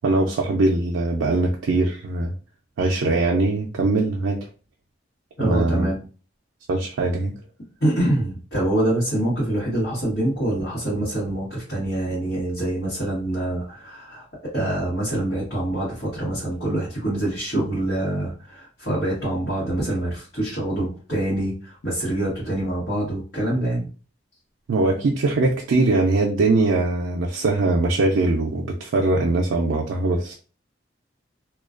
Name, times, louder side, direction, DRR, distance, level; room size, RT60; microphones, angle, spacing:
voice 1, 0.0-2.3 2.8-4.4 5.4-5.9 6.7-7.3 24.7-30.3, right 2 dB, 85° right, 0 dB, 0.4 m, -21 dB
voice 2, 5.4-6.0 7.8-23.9, right 1 dB, 70° left, -9 dB, 1.2 m, -25 dB
2.4 x 2.2 x 2.4 m, 0.37 s
head